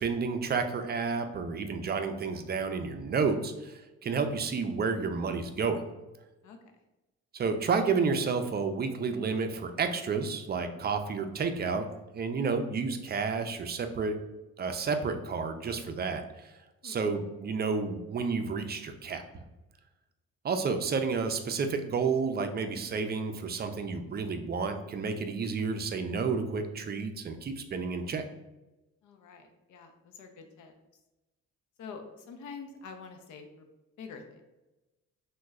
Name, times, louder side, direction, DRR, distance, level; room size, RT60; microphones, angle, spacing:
voice 1, 0.0-5.8 7.3-11.9 12.1-14.2 14.6-16.5 16.8-19.4 20.4-28.2, right 5 dB, 35° right, 7 dB, 0.4 m, -31 dB
voice 2, 29.0-30.7 31.8-33.7 34.0-34.4, left 5 dB, 75° left, 5 dB, 0.6 m, -46 dB
3.0 x 2.2 x 3.5 m, 1.0 s
cardioid pair, 90°, 30 cm